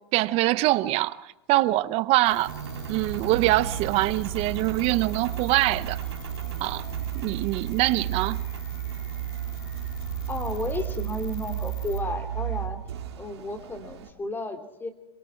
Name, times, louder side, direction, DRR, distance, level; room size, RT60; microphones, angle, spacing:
voice 1, 0.1-2.5 2.9-6.0 6.6-6.9 7.1-8.4, right 18 dB, 50° right, 0.8 m, -24 dB
sound 1, 2.2-12.0, left 13 dB, 70° left, 3.1 m, -45 dB
Engine, 2.5-14.1, right 11 dB, 90° right, 2.4 m, -33 dB
voice 2, 3.4-3.7 10.3-12.8 13.2-14.9, left 2 dB, 15° left, 2.7 m, -33 dB
26.0 x 22.5 x 4.5 m
hypercardioid pair, 115°, 13 cm